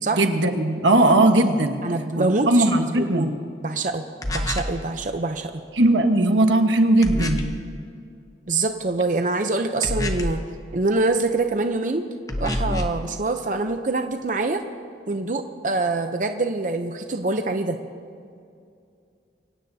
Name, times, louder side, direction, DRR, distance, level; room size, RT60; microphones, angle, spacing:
voice 1, 0.1-1.8 2.2-3.3 5.8-7.5, right 1 dB, 85° right, 5 dB, 1.3 m, -18 dB
voice 2, 1.8-2.6 2.9-3.3 3.6-4.1 4.3-5.5 8.5-10.4 10.7-12.1 12.4-14.6 15.1-17.8, right 3 dB, 45° right, 6 dB, 0.7 m, -25 dB
sound 1, 4.2-4.8 7.0-7.6 9.8-10.5 12.3-13.0, left 1 dB, 20° left, 0.9 m, -27 dB
24.5 x 17.0 x 2.8 m, 2.4 s
head